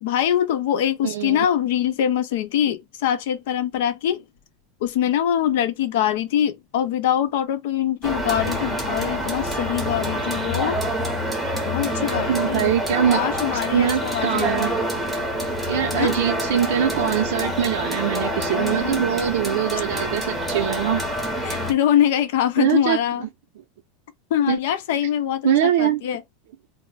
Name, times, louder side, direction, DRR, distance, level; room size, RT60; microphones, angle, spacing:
voice 1, 0.0-4.2 4.8-10.8 11.7-12.7 13.1-14.8 15.8-16.1 18.5-19.2 21.4-23.2 24.3-26.2, left 10 dB, 65° left, 0.5 m, -23 dB
voice 2, 1.0-1.5 12.3-13.2 13.5-14.8 15.7-21.0 22.6-23.0 24.5-24.6 25.4-26.0, right 9 dB, 70° right, 0.5 m, -22 dB
sound 1, 8.0-21.7, equal, ahead, 0.7 m, -26 dB
2.5 x 2.0 x 3.8 m
supercardioid pair, 170°, 0 cm